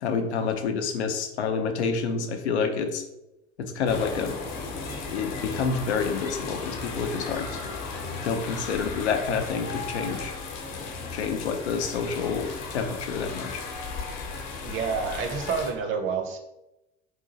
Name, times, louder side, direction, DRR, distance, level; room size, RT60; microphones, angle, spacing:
voice 1, 0.0-3.0 3.6-4.4 5.1-7.5 8.3-10.3 11.1-13.6, left 5 dB, 75° left, 6 dB, 0.6 m, -28 dB
sound 1, 3.9-15.7, left 4 dB, 55° left, 0.9 m, -35 dB
voice 2, 14.6-16.4, right 5 dB, 35° right, 5 dB, 0.7 m, -28 dB
4.1 x 2.6 x 4.0 m, 0.92 s
figure-of-eight pair, 65°, 34 cm